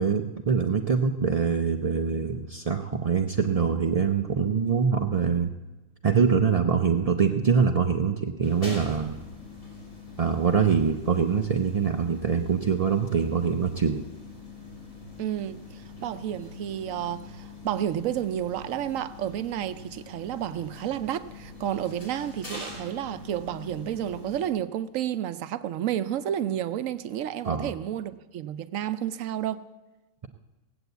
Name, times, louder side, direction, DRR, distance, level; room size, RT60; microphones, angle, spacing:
voice 1, 0.0-5.5 6.0-9.2 10.2-14.0 27.4-27.7, right 6 dB, 50° right, 0.4 m, -24 dB
sound 1, 8.4-24.5, left 3 dB, 65° left, 3.6 m, -44 dB
voice 2, 15.2-29.6, right 11 dB, 70° right, 1.0 m, -31 dB
18.0 x 7.9 x 8.1 m
omnidirectional pair, 1.5 m